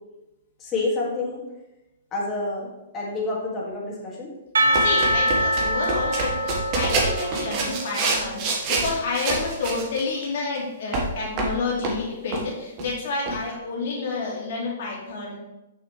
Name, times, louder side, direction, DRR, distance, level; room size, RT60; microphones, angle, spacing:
voice 1, 0.6-1.4 2.1-4.3, left 2 dB, 25° left, -3 dB, 2.1 m, -28 dB
Percussion, 4.5-8.4, equal, 85° right, 0.7 m, -24 dB
sound 1, 4.7-10.2 10.9-12.0 12.3-12.5 12.8-12.9 13.3-13.4, right 3 dB, 40° right, 1.4 m, -27 dB
voice 2, 4.8-15.4, left 3 dB, 60° left, -3 dB, 2.5 m, -29 dB
6.2 x 6.1 x 3.2 m, 0.96 s
hypercardioid pair, 135°, 0 cm